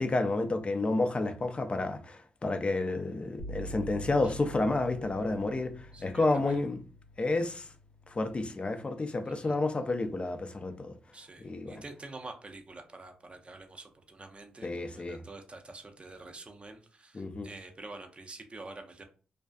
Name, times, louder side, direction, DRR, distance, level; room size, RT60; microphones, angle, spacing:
voice 1, 0.0-6.8 7.2-7.7 8.1-10.9 11.4-11.8 14.6-15.2 17.1-17.5, left 2 dB, 35° left, 0.4 m, -30 dB
sound 1, 3.4-11.1, equal, 90° left, 0.5 m, -47 dB
voice 2, 5.9-6.6 9.2-9.6 11.1-19.0, right 2 dB, 35° right, 0.6 m, -47 dB
2.5 x 2.3 x 2.2 m
supercardioid pair, 45°, 3 cm